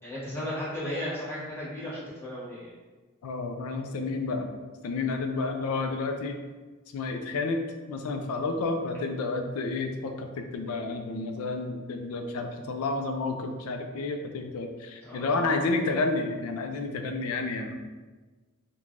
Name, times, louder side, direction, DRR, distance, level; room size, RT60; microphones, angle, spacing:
voice 1, 0.0-2.7 15.0-15.7, left 1 dB, 10° left, -10 dB, 0.9 m, -35 dB
voice 2, 3.2-4.5 4.8-6.4 6.9-7.6 7.9-17.8, left 3 dB, 75° left, 5 dB, 0.3 m, -30 dB
3.2 x 2.2 x 2.5 m, 1.3 s
head